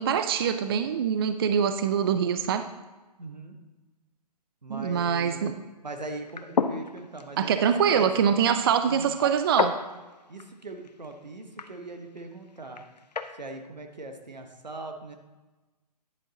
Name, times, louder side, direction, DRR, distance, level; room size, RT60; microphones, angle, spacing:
voice 1, 0.0-2.7 4.7-5.6 7.4-9.8, right 7 dB, 35° right, 10 dB, 0.4 m, -24 dB
voice 2, 3.2-3.6 4.6-5.4 5.8-8.1 8.5-8.6 8.9-9.1 10.3-12.9 13.3-15.1, right 2 dB, 85° right, 5 dB, 1.3 m, -40 dB
sound 1, 6.2-13.4, left 5 dB, 75° left, 0.7 m, -34 dB
10.0 x 9.0 x 2.9 m, 1.2 s
figure-of-eight pair, 135°, 21 cm